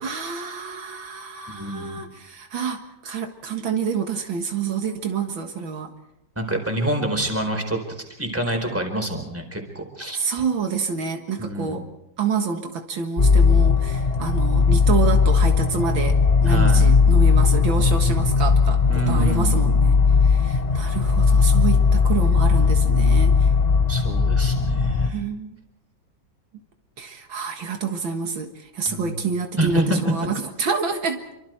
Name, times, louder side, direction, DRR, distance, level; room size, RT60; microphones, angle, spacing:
voice 1, 0.0-5.9 10.1-11.9 12.2-23.5 25.0-25.6 27.0-31.2, right 5 dB, 75° right, 5 dB, 2.4 m, -28 dB
voice 2, 1.5-2.0 6.4-10.2 11.4-11.8 16.5-16.9 18.9-19.7 23.9-25.2 28.9-29.1 29.6-30.0, right 1 dB, 5° right, 3 dB, 4.3 m, -27 dB
sound 1, 13.2-25.1, left 5 dB, 35° left, 0.7 m, -18 dB
28.5 x 24.0 x 4.6 m, 0.84 s
omnidirectional pair, 2.1 m